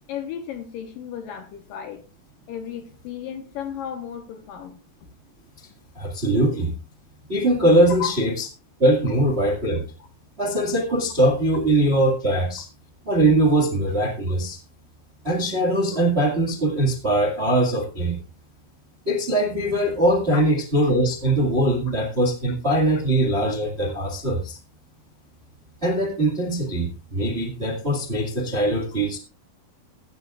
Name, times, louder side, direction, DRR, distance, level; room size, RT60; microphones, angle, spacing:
voice 1, 0.1-2.0 2.5-4.8 8.0-8.2 12.3-12.4 20.3-20.4, left 8 dB, 70° left, 7 dB, 2.5 m, -34 dB
voice 2, 5.9-6.7 7.3-8.4 8.8-9.8 10.4-12.6 13.0-14.6 15.2-18.2 19.0-24.6 25.8-29.2, right 1 dB, 35° right, 2 dB, 1.1 m, -21 dB
15.5 x 12.5 x 2.5 m, 0.34 s
omnidirectional pair, 4.8 m